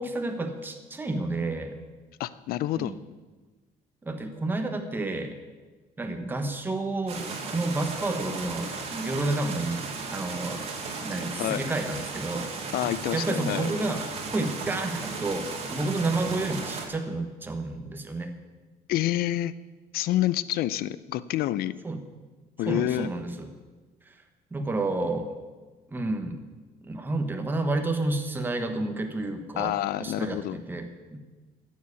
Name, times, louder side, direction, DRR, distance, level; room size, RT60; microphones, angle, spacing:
voice 1, 0.0-1.8 2.8-3.0 4.0-5.4 6.0-9.8 10.1-10.7 11.0-12.5 13.1-14.1 14.3-18.3 21.8-22.0 22.7-23.5 24.0-24.2 24.5-25.3 25.9-26.4 26.8-31.2, right 2 dB, 10° right, 6 dB, 1.1 m, -30 dB
voice 2, 2.2-2.9 11.4-11.6 12.7-13.7 18.9-19.5 19.9-21.7 22.6-23.1 29.6-30.6, left 14 dB, 70° left, 17 dB, 0.6 m, -28 dB
sound 1, 7.1-16.9, right 4 dB, 40° right, 2.0 m, -35 dB
14.0 x 7.5 x 8.3 m, 1.3 s
cardioid pair, 175°, 16 cm